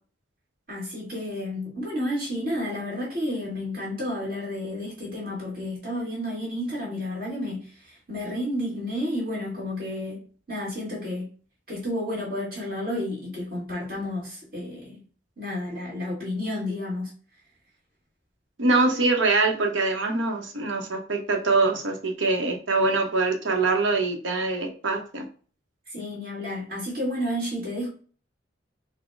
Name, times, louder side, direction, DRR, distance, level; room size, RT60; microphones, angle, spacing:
voice 1, 0.7-11.3 11.7-15.0 15.4-17.1 25.9-27.9, left 1 dB, 50° right, 1.7 m, -31 dB
voice 2, 18.6-25.2, right 3 dB, 85° right, 0.9 m, -24 dB
4.2 x 2.1 x 4.5 m
head